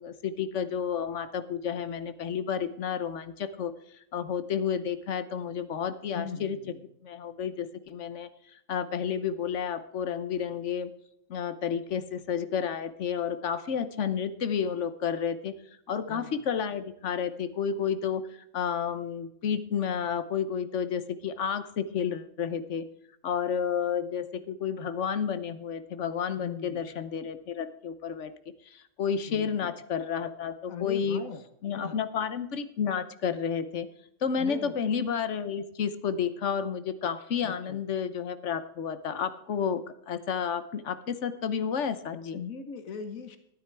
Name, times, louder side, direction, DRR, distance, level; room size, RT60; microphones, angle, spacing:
voice 1, 0.0-3.7 4.1-6.6 7.0-8.3 8.7-10.9 11.3-15.5 15.9-18.2 18.5-22.9 23.2-28.3 29.0-31.2 31.6-33.9 34.2-42.4, left 7 dB, 65° left, 12 dB, 1.2 m, -31 dB
voice 2, 6.1-6.8 16.1-16.5 26.4-26.8 29.3-29.7 30.7-31.4 31.7-32.0 34.4-34.8 37.4-37.8 42.3-43.4, left 6 dB, 90° left, 9 dB, 1.5 m, -39 dB
12.5 x 9.4 x 4.6 m, 0.78 s
omnidirectional pair, 1.4 m